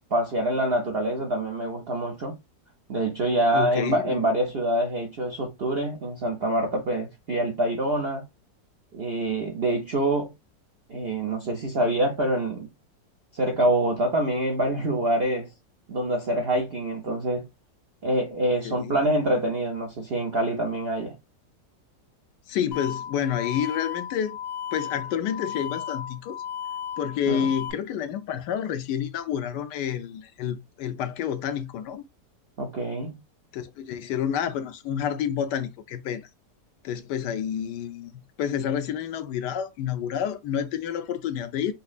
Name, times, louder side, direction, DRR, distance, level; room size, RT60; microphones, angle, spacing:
voice 1, 0.1-2.4 2.9-8.2 8.9-10.3 10.9-12.7 13.3-15.5 15.9-17.5 18.0-21.2 27.3-27.5 32.6-33.2, right 1 dB, 60° right, 0.6 m, -26 dB
voice 2, 3.5-4.2 18.4-19.0 22.5-24.4 24.7-26.4 27.0-32.0 33.5-36.2 36.8-38.1 38.4-41.7, left 9 dB, 80° left, 1.2 m, -29 dB
sound 1, 22.7-27.7, left 9 dB, 60° left, 0.9 m, -35 dB
5.3 x 2.0 x 2.3 m
omnidirectional pair, 1.9 m